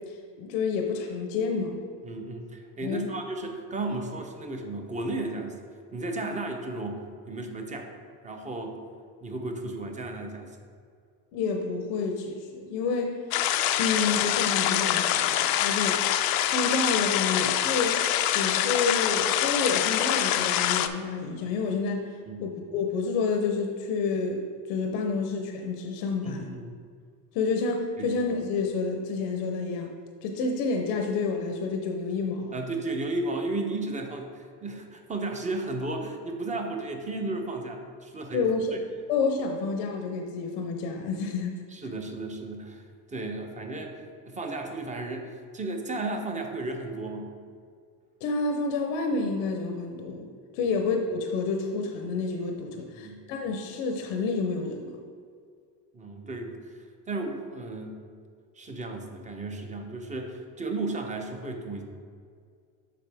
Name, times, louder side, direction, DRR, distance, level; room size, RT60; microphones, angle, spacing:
voice 1, 0.1-1.8 2.8-3.1 11.3-13.2 13.8-16.1 16.5-18.0 18.3-26.5 27.3-29.9 30.2-32.6 38.3-38.7 39.1-41.6 48.2-50.3 50.5-54.9, left 4 dB, 85° left, 3 dB, 0.8 m, -29 dB
voice 2, 2.0-5.6 5.9-7.9 8.2-8.8 9.2-10.6 22.3-22.4 26.2-26.8 28.0-28.1 32.5-38.5 41.7-44.0 44.3-47.3 50.6-50.8 52.9-53.2 55.9-56.7 57.1-58.0 58.6-61.8, right 2 dB, 15° right, 3 dB, 0.7 m, -34 dB
sound 1, 13.3-20.9, left 12 dB, 55° left, 0.5 m, -25 dB
7.7 x 5.2 x 3.4 m, 2.2 s
cardioid pair, 125°, 45 cm